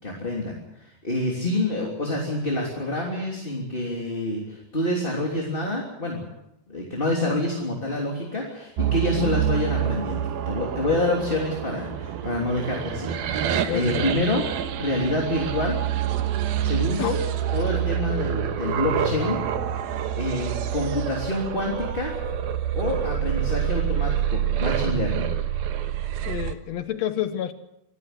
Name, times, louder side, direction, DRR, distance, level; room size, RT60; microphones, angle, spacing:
voice 1, 0.0-6.2 6.7-15.8 16.6-17.2 17.5-19.4 20.1-22.1 22.7-25.3, left 2 dB, 15° left, -1 dB, 3.0 m, -27 dB
sound 1, 8.8-26.5, right 9 dB, 90° right, 3.2 m, -27 dB
voice 2, 13.7-14.1 17.0-17.1 26.3-27.5, left 11 dB, 65° left, 11 dB, 1.8 m, -29 dB
26.0 x 15.5 x 8.0 m, 0.84 s
omnidirectional pair, 4.2 m